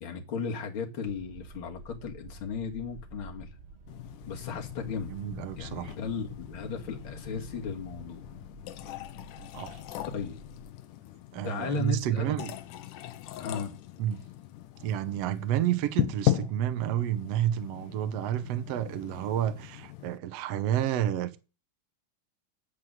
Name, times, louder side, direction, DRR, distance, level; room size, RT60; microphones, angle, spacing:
voice 1, 0.0-3.5 4.3-5.1 5.6-8.3 10.1-10.4 11.4-12.4 13.4-13.7, left 4 dB, 45° left, 2.4 m, -35 dB
sound 1, 1.1-10.7, right 1 dB, 30° right, 1.3 m, -50 dB
sound 2, 3.9-20.2, left 14 dB, 85° left, 2.3 m, -38 dB
voice 2, 5.1-6.0 9.5-9.8 11.3-12.5 14.0-14.2 14.8-21.4, right 11 dB, 65° right, 1.8 m, -30 dB
9.6 x 8.3 x 7.5 m
omnidirectional pair, 3.6 m